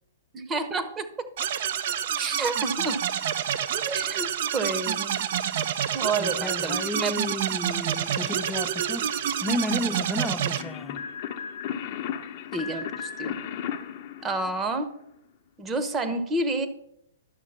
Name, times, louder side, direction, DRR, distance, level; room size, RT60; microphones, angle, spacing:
voice 1, 0.3-1.3 2.2-3.0 3.7-5.1 5.9-7.1 12.5-13.4 14.2-14.9 15.6-16.7, right 3 dB, 20° right, 0.9 m, -29 dB
sound 1, 1.4-10.6, right 9 dB, 55° right, 0.5 m, -28 dB
voice 2, 6.2-9.1 9.4-11.1, left 2 dB, ahead, 0.5 m, -32 dB
sound 2, 10.6-15.0, left 8 dB, 45° left, 0.8 m, -35 dB
11.0 x 6.4 x 4.2 m
hypercardioid pair, 120°, 0 cm